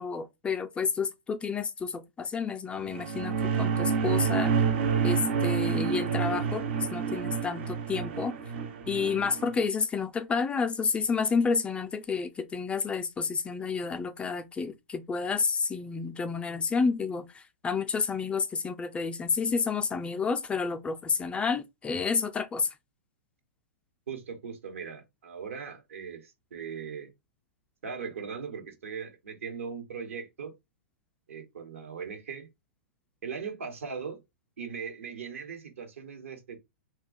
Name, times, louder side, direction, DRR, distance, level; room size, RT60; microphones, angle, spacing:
voice 1, 0.0-4.5 5.0-6.6 6.9-8.3 8.9-22.7, left 5 dB, 15° left, 0.4 m, -30 dB
sound 1, 2.8-9.5, right 6 dB, 60° right, 0.6 m, -28 dB
voice 2, 24.1-27.1 27.8-30.5 31.3-32.5 33.2-34.2 34.6-36.6, right 6 dB, 80° right, 1.1 m, -39 dB
2.4 x 2.3 x 3.8 m
hypercardioid pair, 115°, 7 cm